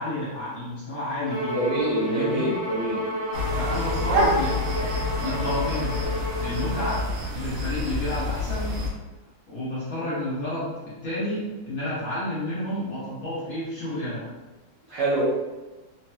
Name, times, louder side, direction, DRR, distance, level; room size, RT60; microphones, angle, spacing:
voice 1, 0.0-1.6 2.0-2.5 3.5-4.6 4.9-6.1 6.4-7.0 7.3-8.7 9.5-14.3, left 1 dB, 55° left, -9 dB, 1.1 m, -30 dB
Bowed string instrument, 1.3-7.0, right 1 dB, 15° right, 0.9 m, -32 dB
voice 2, 1.5-3.0 14.9-15.2, right 1 dB, 65° right, -6 dB, 1.1 m, -25 dB
sound 1, 3.3-8.9, left 1 dB, 85° right, 1.6 m, -27 dB
3.9 x 2.9 x 2.2 m, 1.2 s
omnidirectional pair, 2.3 m